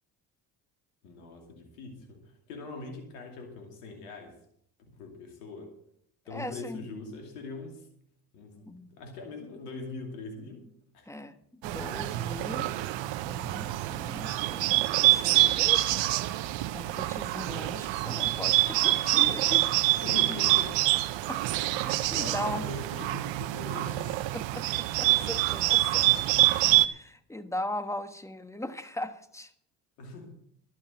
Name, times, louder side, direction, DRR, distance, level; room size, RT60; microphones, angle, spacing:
voice 1, 1.0-4.4 4.8-5.7 6.2-7.9 8.3-10.6 10.9-11.1 20.0-20.8 21.4-21.7 22.0-24.2 30.0-30.4, left 3 dB, 90° left, 3 dB, 2.6 m, -42 dB
voice 2, 6.3-6.9 8.7-8.9 11.1-12.8 13.3-16.0 16.3-19.7 21.3-21.4 21.7-22.7 24.3-26.3 26.8-29.5, left 1 dB, 5° left, 9 dB, 1.3 m, -39 dB
Bird, 11.6-26.9, right 16 dB, 70° right, 0.8 m, -26 dB
12.0 x 7.4 x 7.5 m, 0.69 s
hypercardioid pair, 65°, 47 cm